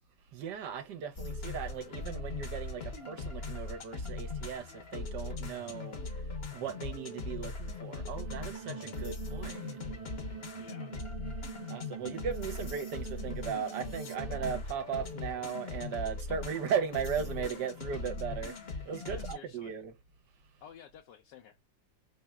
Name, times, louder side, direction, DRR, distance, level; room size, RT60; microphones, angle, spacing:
voice 1, 0.3-9.8 11.7-19.9, right 7 dB, 75° right, 1.4 m, -37 dB
sound 1, 1.2-19.3, left 3 dB, 45° left, 1.0 m, -40 dB
sound 2, 8.2-14.6, right 7 dB, 50° right, 0.4 m, -45 dB
voice 2, 10.6-10.9 19.1-19.8 20.6-21.6, left 8 dB, 80° left, 1.3 m, -52 dB
4.2 x 3.5 x 2.2 m
omnidirectional pair, 1.9 m